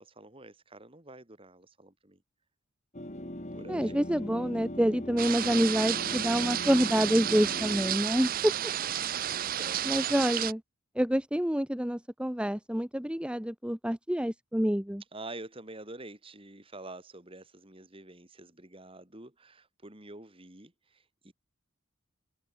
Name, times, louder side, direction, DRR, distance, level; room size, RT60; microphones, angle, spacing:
voice 1, 0.0-2.2 3.5-4.1 8.2-9.8 15.1-21.3, right 2 dB, 25° right, 3.2 m, -48 dB
sound 1, 2.9-8.0, left 1 dB, 35° left, 3.5 m, -40 dB
voice 2, 3.7-8.5 9.8-10.6 10.9-15.0, equal, 5° right, 1.1 m, -27 dB
sound 2, 5.2-10.5, right 11 dB, 45° right, 0.6 m, -32 dB
head